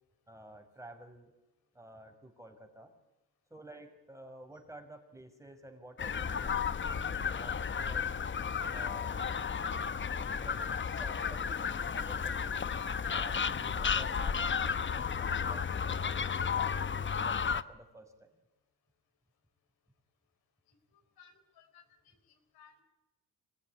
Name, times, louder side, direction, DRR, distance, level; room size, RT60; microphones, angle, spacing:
voice 1, 0.3-1.3 1.7-2.9 3.5-6.6 7.1-8.1 8.7-9.4 10.4-10.6 10.9-12.6 13.1-14.5 14.9-18.3, right 1 dB, 10° right, 5 dB, 6.0 m, -52 dB
sound 1, 6.0-17.6, left 6 dB, 30° left, 1.0 m, -33 dB
voice 2, 21.2-22.8, left 7 dB, 85° left, 4 dB, 4.4 m, -61 dB
26.5 x 16.5 x 9.7 m, 0.98 s
cardioid pair, 90°, 36 cm